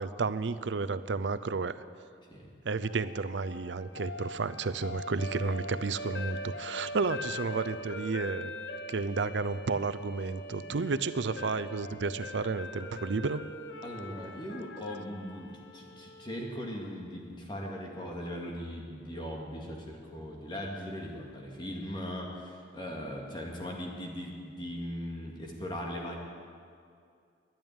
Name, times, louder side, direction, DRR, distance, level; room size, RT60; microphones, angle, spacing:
voice 1, 0.0-1.8 2.6-8.5 8.9-13.4, right 4 dB, 80° right, 13 dB, 0.6 m, -32 dB
sound 1, 2.8-16.9, left 1 dB, 75° left, 0.8 m, -42 dB
voice 2, 13.8-26.2, equal, 25° left, -1 dB, 2.1 m, -39 dB
12.5 x 10.5 x 9.0 m, 2.3 s
head